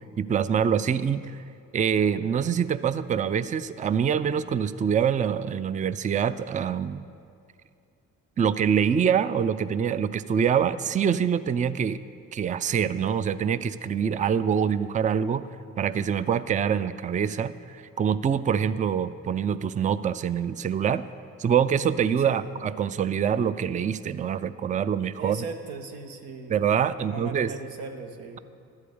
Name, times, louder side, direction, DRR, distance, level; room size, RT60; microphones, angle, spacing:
voice 1, 0.2-1.4 1.7-7.0 8.4-12.0 12.3-15.5 15.8-21.0 21.4-25.4 26.5-27.5, right 8 dB, 20° right, 15 dB, 0.3 m, -25 dB
voice 2, 25.2-26.6 27.0-28.4, right 4 dB, 80° right, 5 dB, 1.0 m, -38 dB
12.0 x 4.9 x 8.6 m, 2.4 s
supercardioid pair, 60°, 36 cm